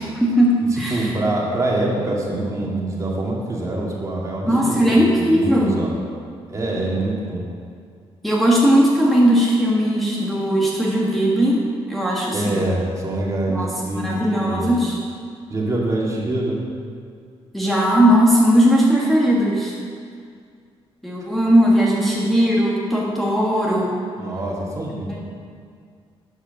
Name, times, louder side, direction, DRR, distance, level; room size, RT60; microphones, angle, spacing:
voice 1, 0.0-1.1 4.4-5.8 8.2-11.6 11.9-12.7 13.5-15.0 17.5-19.7 21.0-24.1 25.1-25.2, equal, ahead, -6 dB, 1.5 m, -18 dB
voice 2, 0.7-5.9 6.5-7.5 12.3-14.7 15.5-16.6 24.2-25.2, right 1 dB, 30° right, -3 dB, 2.1 m, -25 dB
10.5 x 5.1 x 6.8 m, 2.1 s
cardioid pair, 105°, 10 cm